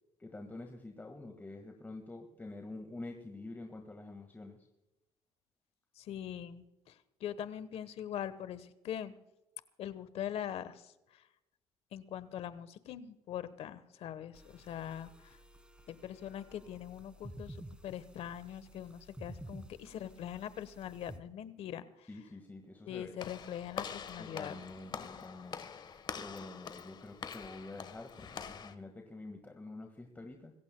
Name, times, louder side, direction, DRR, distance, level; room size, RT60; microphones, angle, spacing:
voice 1, 0.2-4.6 22.1-23.1 24.2-25.6 25.9-30.5, left 2 dB, 15° left, 4 dB, 1.7 m, -47 dB
voice 2, 6.0-9.1 9.8-11.2 11.9-15.4 15.9-17.6 17.8-22.1 22.9-24.5, left 10 dB, 65° left, 14 dB, 1.2 m, -42 dB
sound 1, 14.3-21.2, right 1 dB, 10° right, 1.6 m, -52 dB
Walk footsteps / Slam, 23.2-28.7, left 6 dB, 40° left, 1.3 m, -45 dB
25.5 x 15.5 x 2.3 m, 0.95 s
cardioid pair, 100°, 11 cm